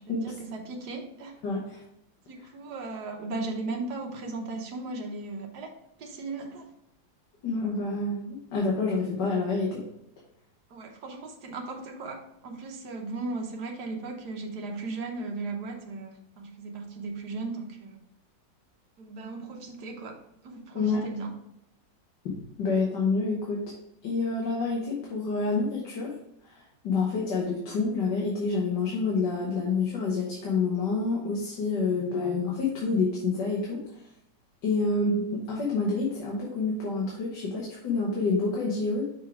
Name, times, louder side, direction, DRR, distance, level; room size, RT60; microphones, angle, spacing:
voice 1, 0.0-1.4 2.3-6.7 10.7-18.0 19.0-21.4, right 3 dB, 65° right, 2 dB, 1.6 m, -37 dB
voice 2, 1.4-1.8 7.4-9.8 20.7-21.1 22.3-23.7 24.0-26.1 26.5-33.8 34.6-39.0, left 3 dB, 70° left, -3 dB, 1.8 m, -28 dB
6.4 x 3.9 x 4.5 m, 0.79 s
omnidirectional pair, 1.9 m